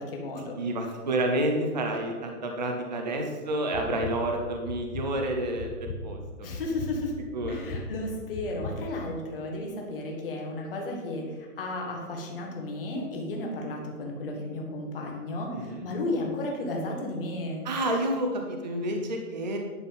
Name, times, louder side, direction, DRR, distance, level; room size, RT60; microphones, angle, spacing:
voice 1, 0.0-0.6 6.4-7.2 7.5-17.6, left 2 dB, 35° left, 0 dB, 1.7 m, -33 dB
voice 2, 0.6-6.5 7.3-7.7 15.5-15.8 17.6-19.6, right 1 dB, 30° right, 2 dB, 0.5 m, -29 dB
sound 1, 3.7-4.1 4.6-5.1 5.6-6.0 6.5-6.9 7.4-7.8 8.3-8.7, left 3 dB, 75° left, 2.0 m, -36 dB
11.0 x 4.1 x 5.3 m, 1.4 s
hypercardioid pair, 175°, 47 cm